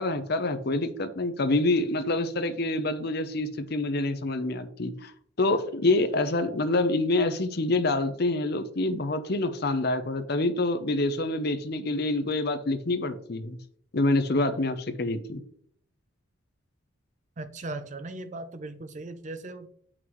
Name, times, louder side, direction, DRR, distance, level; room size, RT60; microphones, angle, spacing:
voice 1, 0.0-5.1 5.4-13.6 13.9-15.4, left 2 dB, 50° left, 10 dB, 0.6 m, -26 dB
voice 2, 17.4-19.7, right 2 dB, 35° right, 10 dB, 0.5 m, -38 dB
7.8 x 5.9 x 3.1 m, 0.62 s
head